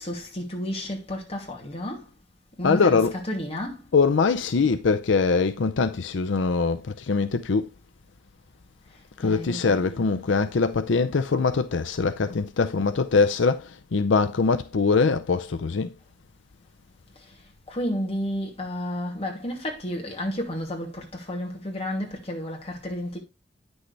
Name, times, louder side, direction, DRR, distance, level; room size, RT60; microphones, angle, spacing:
voice 1, 0.0-2.1 2.6-3.9 9.2-10.0 17.7-23.2, equal, 35° left, 2.6 m, -31 dB
voice 2, 2.6-3.2 3.9-7.7 9.2-15.9, left 4 dB, 85° left, 0.6 m, -23 dB
9.6 x 6.3 x 3.3 m
head